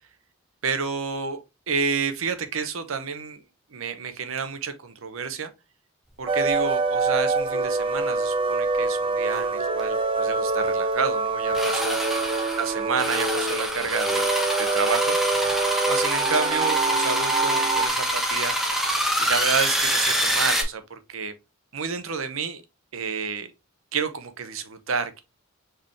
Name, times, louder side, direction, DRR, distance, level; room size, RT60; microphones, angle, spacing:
voice 1, 0.6-3.4 3.7-5.5 6.2-12.0 12.6-15.2 15.9-18.5 19.2-21.3 21.7-22.6 22.9-23.5 23.9-25.2, right 5 dB, 70° right, 0.8 m, -29 dB
sound 1, 6.3-17.9, right 3 dB, 25° right, 0.4 m, -25 dB
sound 2, 9.4-9.5 9.8-9.9 11.5-20.6, equal, ahead, 0.9 m, -26 dB
4.5 x 3.7 x 3.1 m
head